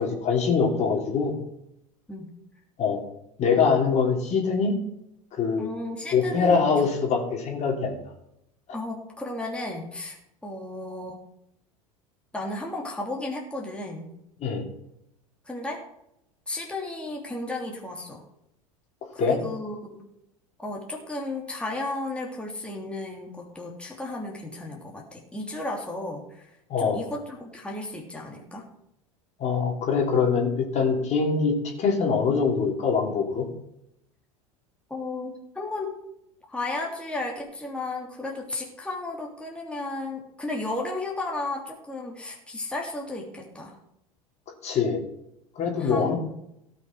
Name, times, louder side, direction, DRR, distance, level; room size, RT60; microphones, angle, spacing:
voice 1, 0.0-1.3 2.8-3.0 3.4-4.7 5.3-5.7 6.1-8.0 14.4-14.6 19.2-19.4 26.7-27.0 29.4-33.5 44.6-45.0 45.5-46.2, left 5 dB, 40° left, 1 dB, 3.2 m, -23 dB
voice 2, 5.6-6.7 8.7-10.2 10.4-11.2 12.3-14.1 15.5-15.8 16.5-18.2 19.1-20.1 20.6-26.5 26.8-28.7 34.9-35.9 36.5-43.7 45.8-46.2, left 2 dB, 5° left, -1 dB, 2.9 m, -34 dB
17.0 x 6.0 x 6.3 m, 0.80 s
figure-of-eight pair, 75°, 18 cm